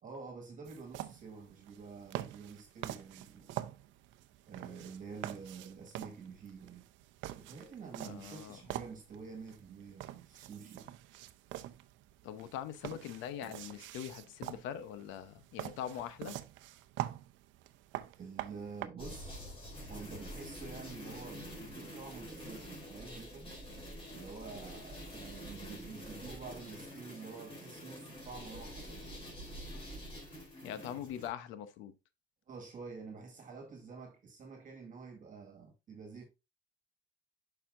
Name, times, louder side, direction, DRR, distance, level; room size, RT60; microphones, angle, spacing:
voice 1, 0.0-3.5 4.5-6.8 7.3-10.9 18.2-19.4 19.9-23.5 24.1-29.2 30.9-31.0 32.5-36.2, right 5 dB, 45° right, 1.8 m, -48 dB
sound 1, 0.6-18.9, right 14 dB, 75° right, 0.6 m, -45 dB
voice 2, 8.0-8.6 12.2-16.4 30.6-31.9, left 10 dB, 85° left, 0.9 m, -42 dB
sound 2, 19.0-31.3, equal, 30° left, 3.9 m, -47 dB
7.1 x 5.8 x 2.5 m
cardioid pair, 115°, 19 cm